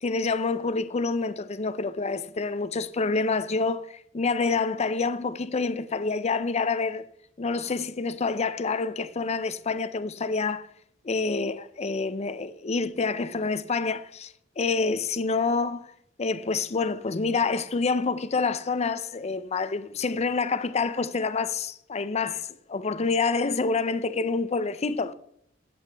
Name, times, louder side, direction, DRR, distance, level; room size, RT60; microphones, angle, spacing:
voice 1, 0.0-7.0 7.4-10.7 11.0-15.9 16.2-25.1, left 4 dB, 35° left, 0.5 m, -27 dB
16.0 x 7.8 x 3.4 m
head